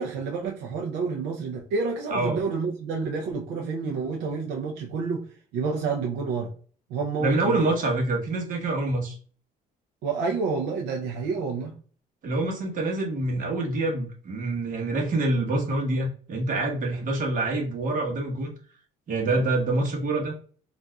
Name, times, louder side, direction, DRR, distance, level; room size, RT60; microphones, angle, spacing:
voice 1, 0.0-5.2 5.5-6.5 6.9-7.6 10.0-11.8, right 4 dB, 90° right, 0.6 m, -29 dB
voice 2, 7.2-9.1 12.2-18.5 19.1-20.4, right 2 dB, 50° right, 1.3 m, -26 dB
4.0 x 2.5 x 2.3 m
cardioid pair, 110°, 17 cm